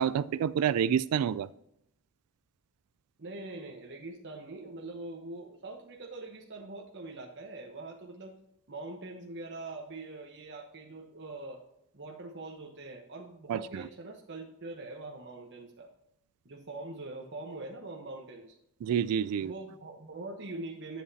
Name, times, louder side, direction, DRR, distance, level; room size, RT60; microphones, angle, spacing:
voice 1, 0.0-1.5 13.5-13.9 18.8-19.5, right 8 dB, 85° right, 17 dB, 0.3 m, -28 dB
voice 2, 3.2-8.3 8.7-11.6 11.9-15.9 16.4-18.6 19.4-21.0, right 2 dB, 55° right, 0 dB, 1.0 m, -43 dB
9.7 x 8.1 x 2.8 m, 0.80 s
head